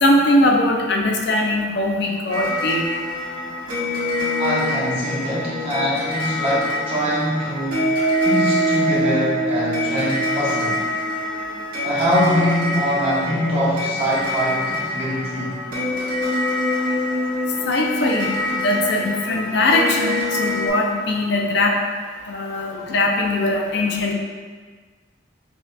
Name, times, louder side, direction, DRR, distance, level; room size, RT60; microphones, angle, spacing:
voice 1, 0.0-2.8 17.7-18.3 18.5-21.7 22.3-24.1, left 1 dB, 60° left, 1 dB, 0.5 m, -20 dB
sound 1, 2.3-20.7, left 1 dB, 50° right, 1.5 m, -24 dB
voice 2, 4.4-7.9 8.2-10.8 11.8-15.6, equal, 30° right, -8 dB, 1.1 m, -23 dB
5.6 x 2.7 x 2.2 m, 1.5 s
head